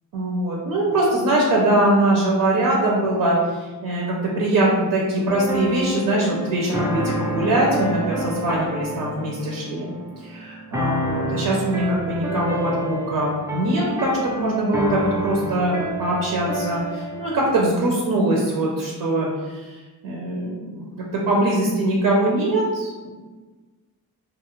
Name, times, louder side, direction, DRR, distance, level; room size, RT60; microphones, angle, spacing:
voice 1, 0.1-9.9 10.2-20.8 21.3-23.1, right 1 dB, 75° right, -3 dB, 0.7 m, -22 dB
sound 1, 5.3-17.7, equal, 10° right, 0.4 m, -29 dB
2.7 x 2.4 x 3.0 m, 1.3 s
cardioid pair, 110°, 35 cm